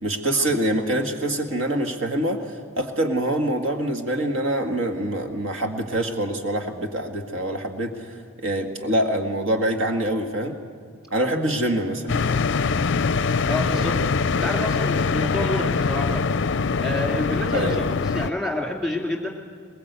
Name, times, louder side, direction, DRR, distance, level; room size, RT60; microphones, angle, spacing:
voice 1, 0.0-10.6 11.1-12.2 17.5-17.8, right 1 dB, 65° right, 4 dB, 1.8 m, -25 dB
sound 1, 12.1-18.3, left 4 dB, 55° left, 0.5 m, -23 dB
voice 2, 13.4-14.0 14.3-16.3 16.8-19.3, left 1 dB, ahead, 0 dB, 2.6 m, -28 dB
21.5 x 21.0 x 8.1 m, 2.2 s
head